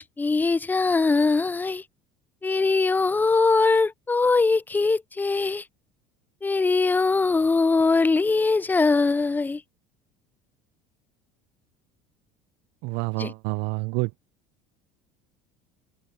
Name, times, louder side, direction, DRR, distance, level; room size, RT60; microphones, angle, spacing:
voice 1, 0.0-1.8 2.4-5.6 6.4-9.6 13.2-13.3, left 3 dB, 10° left, 0.3 m, -22 dB
voice 2, 12.8-14.1, right 25 dB, 70° right, 0.7 m, -28 dB
open air
supercardioid pair, 90°, 18 cm